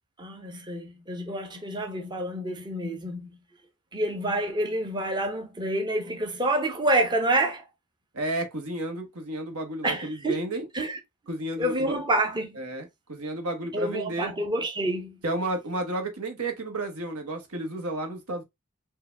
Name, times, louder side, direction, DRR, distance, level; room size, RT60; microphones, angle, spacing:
voice 1, 0.2-3.3 3.9-7.6 9.8-10.4 10.7-11.0 11.6-12.6 13.7-15.2, right 1 dB, 20° right, 0.8 m, -28 dB
voice 2, 8.1-10.7 11.3-12.0 12.5-14.3 15.2-18.4, right 1 dB, 80° right, 1.4 m, -32 dB
4.7 x 2.7 x 3.4 m
head